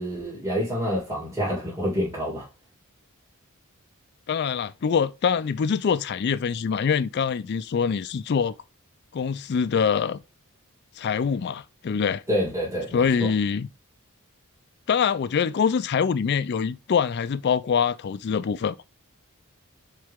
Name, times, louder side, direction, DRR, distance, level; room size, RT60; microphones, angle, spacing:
voice 1, 0.0-2.5 12.3-13.3, equal, 15° right, 2.2 m, -27 dB
voice 2, 4.3-8.6 9.1-10.2 11.0-12.2 12.9-13.7 14.9-18.7, left 6 dB, 50° left, 0.3 m, -24 dB
6.5 x 4.1 x 3.5 m
head